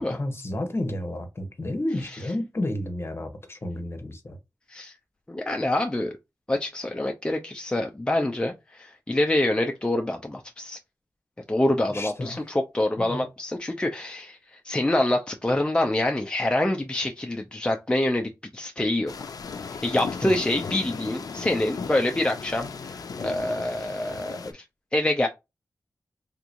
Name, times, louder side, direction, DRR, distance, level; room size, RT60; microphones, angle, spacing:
voice 1, 0.0-4.4 11.9-12.5 13.0-13.2 20.2-20.3, left 1 dB, 40° left, 1.0 m, -31 dB
voice 2, 5.3-6.1 6.5-10.8 11.5-14.4 14.6-19.1 19.8-24.6 24.9-25.3, left 1 dB, 15° left, 0.6 m, -26 dB
sound 1, 19.1-24.5, left 5 dB, 75° left, 0.5 m, -36 dB
3.5 x 2.9 x 2.5 m
wide cardioid pair, 65°, 6 cm